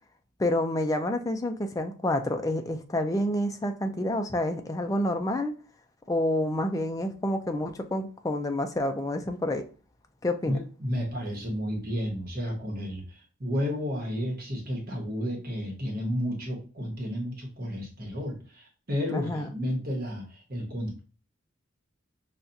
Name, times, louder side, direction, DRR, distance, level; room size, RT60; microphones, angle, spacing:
voice 1, 0.4-5.5 6.1-9.6 10.2-10.6 19.1-19.5, left 1 dB, 15° left, 0.3 m, -28 dB
voice 2, 10.5-21.0, equal, 45° right, 1.1 m, -32 dB
5.6 x 2.4 x 2.6 m
head